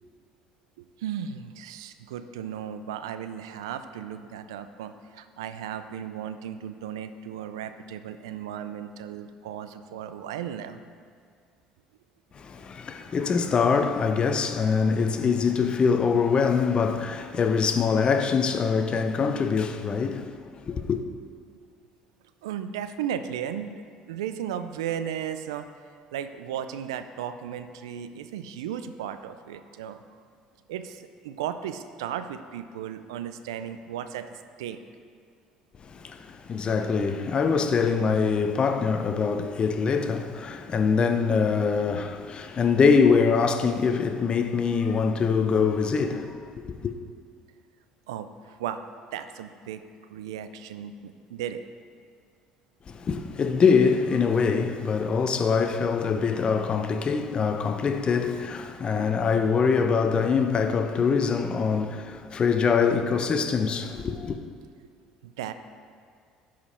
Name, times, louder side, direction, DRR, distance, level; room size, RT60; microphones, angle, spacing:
voice 1, 0.8-10.8 22.4-25.7 26.1-30.2 30.7-34.8 48.1-49.8 50.1-51.6 65.2-65.5, right 9 dB, 90° right, 0.4 m, -35 dB
voice 2, 12.3-21.0 35.8-46.4 46.6-46.9 52.9-64.4, left 5 dB, 40° left, 0.7 m, -24 dB
11.0 x 5.1 x 4.3 m
hypercardioid pair, 70°, 3 cm